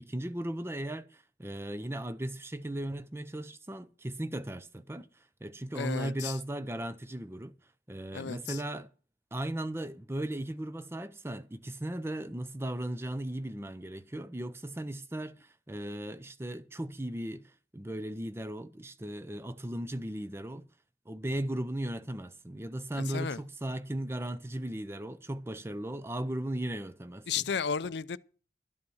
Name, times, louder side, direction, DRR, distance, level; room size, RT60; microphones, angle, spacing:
voice 1, 0.0-7.5 7.9-8.9 9.3-20.7 21.1-27.5, right 1 dB, 15° right, 0.6 m, -37 dB
voice 2, 5.7-6.3 8.1-8.6 22.9-23.4 27.3-28.2, left 6 dB, 80° left, 0.5 m, -33 dB
12.5 x 8.7 x 6.3 m
head